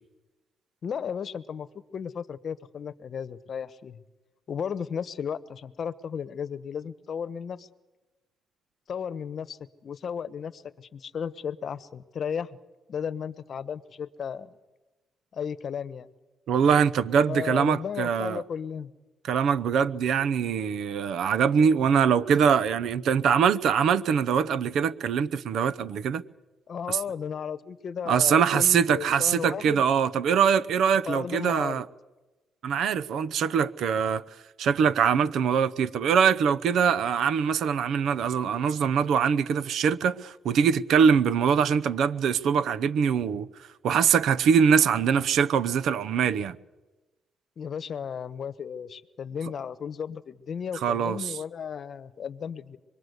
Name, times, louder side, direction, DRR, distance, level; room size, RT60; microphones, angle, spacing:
voice 1, 0.8-1.7 1.9-4.0 4.5-7.7 8.9-12.5 12.9-14.6 15.3-16.1 17.2-18.9 26.7-29.8 31.1-31.8 47.6-52.8, left 7 dB, 55° left, 1.0 m, -34 dB
voice 2, 16.5-18.4 19.3-26.2 26.9-27.0 28.1-31.9 32.6-34.2 34.6-43.5 43.8-46.6 50.8-51.3, right 7 dB, 75° right, 0.8 m, -23 dB
25.5 x 21.5 x 8.1 m
cardioid pair, 90°, 0 cm